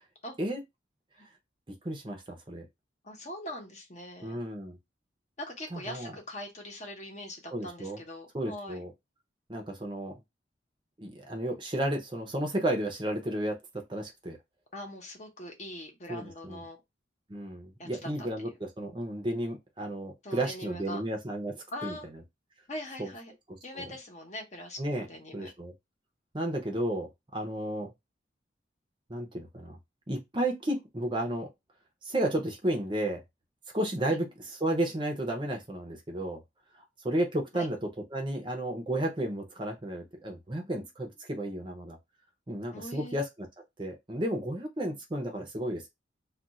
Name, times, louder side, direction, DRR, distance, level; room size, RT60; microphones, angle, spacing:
voice 1, 1.8-2.7 4.2-4.8 5.7-6.1 7.5-8.0 8.3-8.9 9.5-10.1 11.0-14.4 16.1-16.6 17.3-22.0 23.0-23.1 23.8-23.9 24.8-25.1 25.3-25.7 26.3-27.9 29.1-29.8 30.1-31.5 32.0-33.2 33.7-36.4 37.0-37.8 38.1-42.0 42.5-43.3 43.8-45.9, right 1 dB, 25° right, 0.6 m, -32 dB
voice 2, 3.0-4.4 5.4-8.8 14.7-16.8 17.8-18.5 20.2-21.0 21.7-22.1 22.7-23.3 23.6-25.5 34.1-34.2 37.5-37.7 42.7-43.2, left 1 dB, 40° left, 0.9 m, -42 dB
2.4 x 2.3 x 4.0 m
head